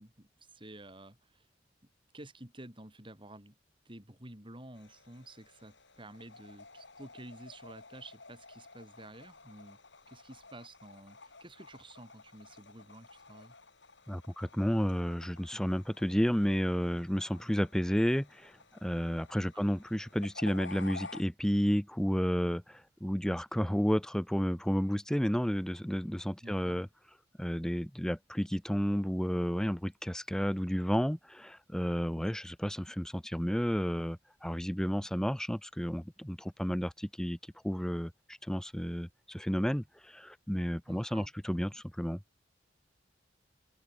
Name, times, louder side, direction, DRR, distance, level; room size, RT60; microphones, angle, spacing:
voice 1, 0.0-1.5 2.1-3.5 3.8-9.8 10.1-13.5 19.5-19.7 26.4-26.8 40.9-41.3, right 1 dB, 25° right, 4.3 m, -51 dB
sound 1, 4.7-21.2, left 3 dB, 70° left, 7.0 m, -53 dB
voice 2, 14.1-18.5 18.8-26.9 27.4-37.4 37.6-38.1 38.5-42.2, equal, 5° left, 0.7 m, -31 dB
open air
head